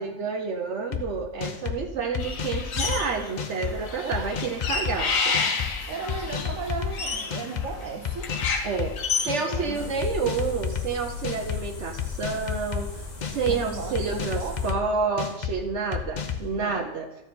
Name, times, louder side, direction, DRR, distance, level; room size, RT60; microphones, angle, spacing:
voice 1, 0.0-5.4 8.6-8.9 9.2-12.9 13.2-17.1, right 5 dB, 65° right, 1.0 m, -29 dB
sound 1, 0.9-1.0 1.4-1.8 2.1-3.0 3.4-3.7 4.1-5.0 5.3-5.7 6.1-6.9 7.3-7.7 8.0-8.9 9.3-9.7 10.0-10.9 11.2-11.6 12.0-12.8 13.2-13.6 13.9-14.8 15.2-15.5 15.9-16.5, left 8 dB, 45° left, 0.6 m, -30 dB
sound 2, 2.2-3.3 3.6-9.8, left 5 dB, 85° left, 1.4 m, -30 dB
voice 2, 4.0-4.5 4.8-5.0 5.9-8.4 9.5-10.1 13.5-14.8 16.6-17.0, right 5 dB, 85° right, 1.1 m, -36 dB
sound 3, 9.7-14.7, left 4 dB, 70° left, 1.9 m, -39 dB
13.0 x 4.8 x 4.2 m
omnidirectional pair, 1.4 m